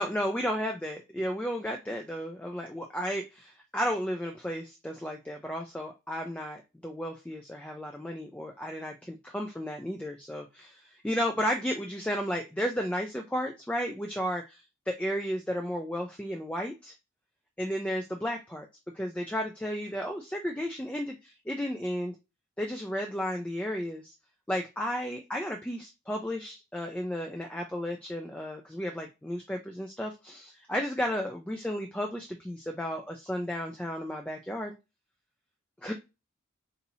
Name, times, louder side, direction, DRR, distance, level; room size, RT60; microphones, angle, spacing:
voice 1, 0.0-16.9 17.6-18.7 18.9-22.2 22.6-24.1 24.5-34.8 35.8-35.9, equal, 5° left, 2 dB, 0.3 m, -33 dB
2.8 x 2.6 x 4.1 m, 0.26 s
head